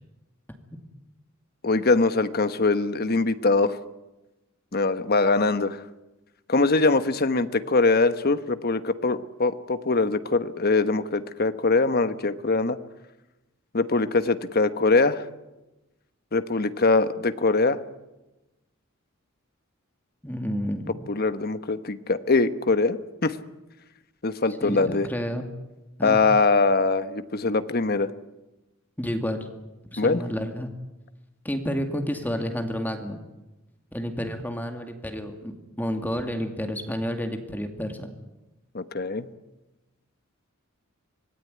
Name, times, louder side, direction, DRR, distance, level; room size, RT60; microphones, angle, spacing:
voice 1, 1.6-3.8 4.7-5.8 6.5-12.8 13.7-15.2 16.3-17.8 21.1-23.4 24.2-25.1 26.0-28.1 30.0-30.2 38.7-39.3, left 3 dB, 50° left, 11 dB, 1.3 m, -22 dB
voice 2, 20.2-20.9 24.6-25.5 26.0-26.2 29.0-29.5 29.9-30.7 31.4-33.2 33.9-38.1, equal, 10° left, 5 dB, 2.3 m, -30 dB
25.5 x 19.0 x 9.7 m, 1.0 s
head